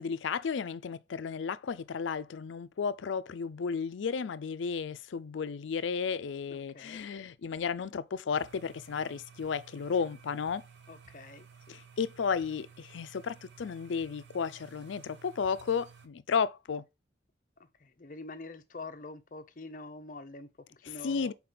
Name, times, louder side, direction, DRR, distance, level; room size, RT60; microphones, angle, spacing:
voice 1, 0.0-10.6 11.7-16.8 21.0-21.3, left 6 dB, 80° left, 0.4 m, -33 dB
voice 2, 6.5-7.1 10.9-11.8 17.6-21.3, left 2 dB, 45° left, 0.7 m, -46 dB
sound 1, 8.3-16.1, right 6 dB, 75° right, 0.8 m, -55 dB
5.9 x 4.2 x 3.8 m
head